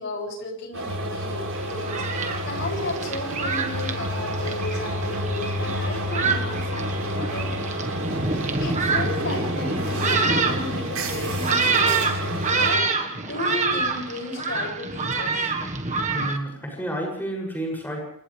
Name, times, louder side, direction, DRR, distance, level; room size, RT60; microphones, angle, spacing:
voice 1, 0.0-7.8 8.6-12.0 12.6-15.5, left 2 dB, 55° left, 0 dB, 7.3 m, -34 dB
sound 1, 0.7-12.8, equal, 90° right, 6.6 m, -29 dB
Thunderstorm, 1.6-16.4, right 4 dB, 35° right, 1.5 m, -27 dB
voice 2, 16.1-18.0, right 1 dB, 10° left, -1 dB, 7.2 m, -30 dB
28.0 x 27.5 x 3.4 m, 0.67 s
head